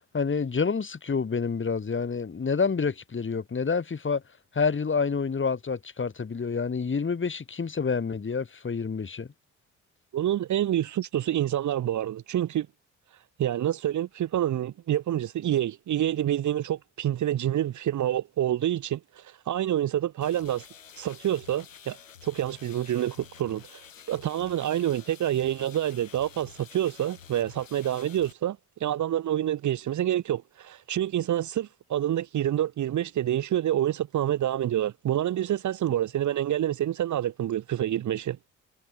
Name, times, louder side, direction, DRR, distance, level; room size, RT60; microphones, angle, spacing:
voice 1, 0.1-4.2 4.5-9.3, left 5 dB, 30° left, 4.1 m, -28 dB
voice 2, 10.1-12.7 13.4-20.6 21.0-23.8 24.1-38.5, right 11 dB, 50° right, 1.7 m, -27 dB
sound 1, 20.2-28.3, left 7 dB, 85° left, 6.1 m, -50 dB
figure-of-eight pair, 45°, 38 cm